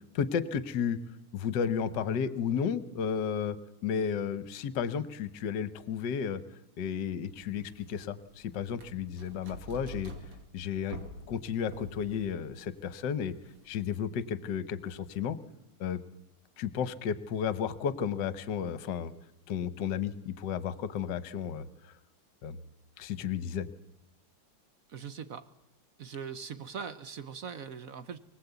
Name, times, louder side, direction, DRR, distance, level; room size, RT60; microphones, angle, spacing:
voice 1, 0.1-1.0 1.3-3.6 3.8-6.4 6.8-10.1 10.5-11.0 11.3-13.3 13.7-15.4 15.8-16.0 16.6-19.1 19.5-21.9 22.4-22.6 23.0-23.7, left 7 dB, 60° left, 14 dB, 1.5 m, -33 dB
sound 1, 7.3-13.9, right 1 dB, 90° right, 3.3 m, -48 dB
voice 2, 24.9-25.5 26.0-28.2, right 6 dB, 55° right, 13 dB, 1.0 m, -41 dB
24.0 x 18.0 x 8.2 m, 0.90 s
omnidirectional pair, 2.4 m